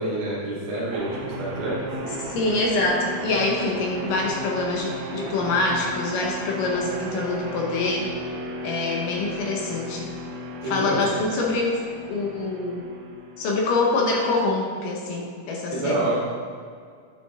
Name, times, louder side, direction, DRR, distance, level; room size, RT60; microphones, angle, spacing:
voice 1, 0.0-2.1 10.6-11.1 15.7-16.1, right 2 dB, 50° right, -6 dB, 2.9 m, -27 dB
sound 1, 0.9-13.9, right 1 dB, 75° right, 2.9 m, -35 dB
voice 2, 2.3-8.1 8.6-10.1 10.6-12.9 13.4-16.0, left 3 dB, 75° left, -1 dB, 2.0 m, -25 dB
8.5 x 5.8 x 3.5 m, 2.1 s
omnidirectional pair, 4.7 m